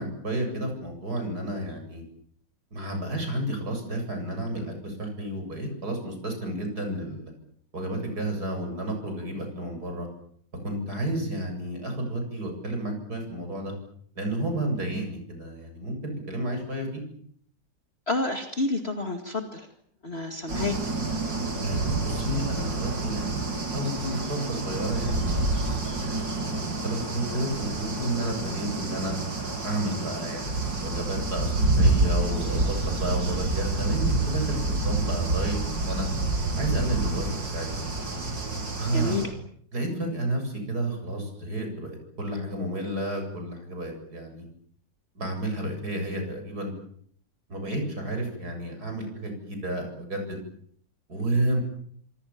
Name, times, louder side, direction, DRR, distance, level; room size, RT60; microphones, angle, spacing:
voice 1, 0.0-2.0 2.7-7.3 7.7-10.1 10.5-13.7 14.1-17.0 21.6-23.4 23.7-25.4 26.0-29.2 29.6-36.1 36.5-37.7 38.7-39.3 39.7-44.4 45.1-46.7 47.5-50.4 51.1-51.6, right 1 dB, 60° right, 4 dB, 8.6 m, -31 dB
voice 2, 18.1-19.7 20.0-20.8 38.9-39.3, left 2 dB, 35° left, 5 dB, 2.4 m, -29 dB
sound 1, 20.5-39.3, right 2 dB, 90° right, 5.0 m, -28 dB
27.0 x 26.0 x 7.3 m, 0.63 s
omnidirectional pair, 1.9 m